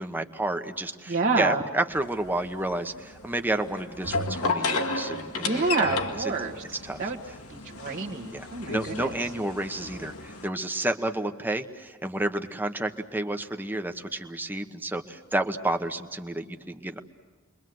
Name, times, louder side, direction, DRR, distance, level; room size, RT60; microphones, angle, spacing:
voice 1, 0.0-5.9 6.8-7.0 8.3-8.5 8.7-17.0, right 1 dB, 10° right, 6 dB, 1.1 m, -30 dB
voice 2, 1.1-1.7 5.4-6.6 7.0-7.2 7.5-9.1, right 3 dB, 40° right, -4 dB, 1.6 m, -28 dB
sound 1, 1.9-10.5, left 3 dB, 85° left, 2.1 m, -33 dB
30.0 x 23.0 x 7.8 m, 1.4 s
head